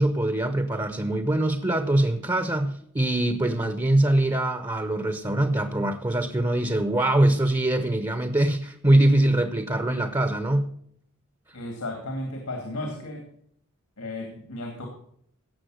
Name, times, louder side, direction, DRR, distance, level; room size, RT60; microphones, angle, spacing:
voice 1, 0.0-10.7, right 1 dB, 20° right, 10 dB, 0.8 m, -23 dB
voice 2, 11.5-13.3 14.0-14.9, left 1 dB, 80° left, 3 dB, 2.5 m, -34 dB
16.5 x 7.1 x 6.4 m, 0.67 s
head